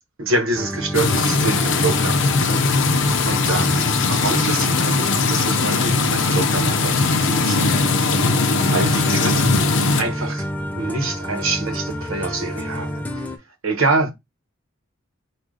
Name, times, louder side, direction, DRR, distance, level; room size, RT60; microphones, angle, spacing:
voice 1, 0.2-2.6 3.0-8.3 8.6-9.6 10.0-10.5 10.8-13.3 13.6-14.1, right 2 dB, 75° right, 1.0 m, -26 dB
sound 1, 0.6-13.4, equal, 10° left, 0.4 m, -30 dB
sound 2, 0.9-10.0, left 3 dB, 60° left, 0.6 m, -19 dB
4.8 x 2.4 x 3.7 m
head